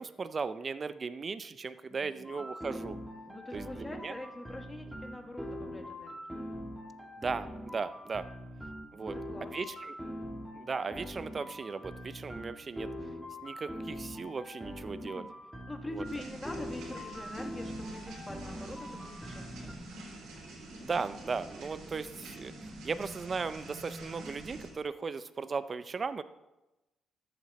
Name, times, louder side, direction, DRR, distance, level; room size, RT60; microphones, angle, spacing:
voice 1, 0.0-3.0 3.5-4.1 7.2-8.3 8.9-9.2 9.5-9.9 10.5-12.9 13.4-15.2 15.9-16.0 20.8-26.2, right 5 dB, 35° right, 13 dB, 0.5 m, -37 dB
voice 2, 1.9-2.3 3.3-6.4 8.9-9.7 15.0-15.3 15.7-19.8, left 1 dB, 20° left, 4 dB, 1.6 m, -45 dB
sound 1, 2.2-19.7, equal, 10° right, 2.1 m, -43 dB
sound 2, 16.0-24.7, right 2 dB, 80° right, 3.6 m, -46 dB
13.5 x 7.6 x 4.1 m, 1.0 s
cardioid pair, 90°, 0 cm